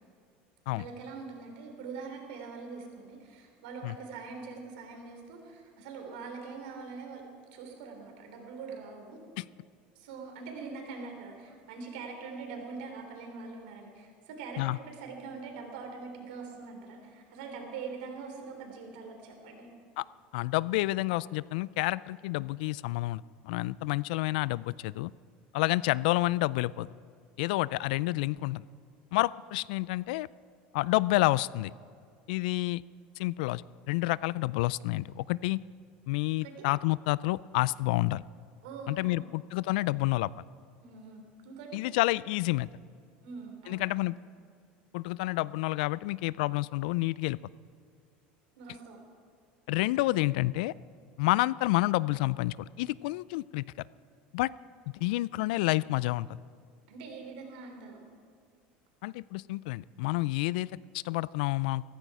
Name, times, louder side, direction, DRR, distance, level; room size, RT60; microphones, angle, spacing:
voice 1, 0.7-7.2 7.5-9.2 9.9-19.7 36.4-36.5 38.6-39.3 40.8-41.8 43.2-43.8 48.5-49.0 56.9-58.0, right 4 dB, 85° right, 3 dB, 3.4 m, -43 dB
voice 2, 20.3-25.1 25.5-26.9 27.4-28.6 29.1-30.3 30.7-31.7 32.3-32.8 33.2-35.6 36.1-38.2 38.9-40.3 41.7-42.7 43.7-44.2 44.9-47.4 49.7-50.7 51.2-53.6 54.3-54.5 54.9-56.3 59.0-60.7 60.9-61.8, left 19 dB, 85° left, 21 dB, 0.3 m, -29 dB
15.0 x 14.5 x 4.8 m, 2.3 s
supercardioid pair, 140°, 5 cm